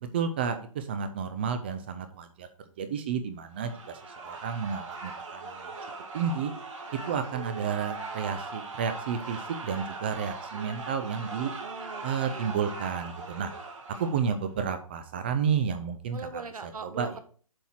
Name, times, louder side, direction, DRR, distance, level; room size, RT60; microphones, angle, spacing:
voice 1, 0.0-2.5 2.8-5.7 6.1-6.5 7.1-11.5 12.0-13.5 14.0-16.4 16.8-17.2, right 6 dB, 20° right, 8 dB, 0.4 m, -31 dB
sound 1, 3.5-14.5, right 3 dB, 60° right, 2.5 m, -40 dB
voice 2, 11.6-12.5 14.0-14.1 16.1-17.2, right 5 dB, 85° right, 9 dB, 1.4 m, -41 dB
7.3 x 4.5 x 5.6 m, 0.43 s
hypercardioid pair, 160°, 18 cm